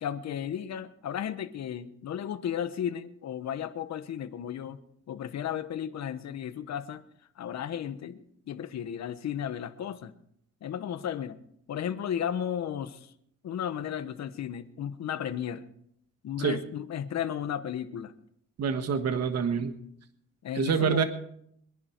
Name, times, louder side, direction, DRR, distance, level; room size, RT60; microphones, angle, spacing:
voice 1, 0.0-4.8 5.1-7.0 7.4-8.2 8.5-10.1 10.6-11.4 11.7-13.1 13.4-15.6 16.2-18.1 20.4-21.0, left 9 dB, 60° left, 10 dB, 1.2 m, -34 dB
voice 2, 18.6-19.7 20.5-21.0, right 6 dB, 55° right, 8 dB, 1.5 m, -26 dB
23.0 x 11.0 x 4.6 m, 0.71 s
cardioid pair, 90°, 30 cm